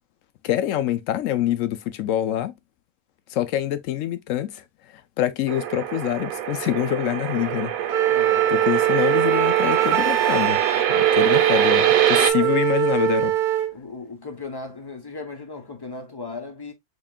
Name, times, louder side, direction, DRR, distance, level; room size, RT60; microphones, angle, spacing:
voice 1, 0.4-2.5 3.3-8.0 8.5-10.6 10.9-13.3, left 12 dB, 70° left, 0.9 m, -25 dB
sound 1, 5.5-12.3, right 10 dB, 80° right, 1.1 m, -24 dB
Wind instrument woodwind instrument, 7.9-13.7, right 12 dB, 55° right, 0.6 m, -21 dB
voice 2, 8.1-8.5 12.3-12.6 12.9-13.1 13.7-16.7, left 3 dB, 25° left, 0.7 m, -37 dB
4.9 x 3.1 x 2.2 m
omnidirectional pair, 1.5 m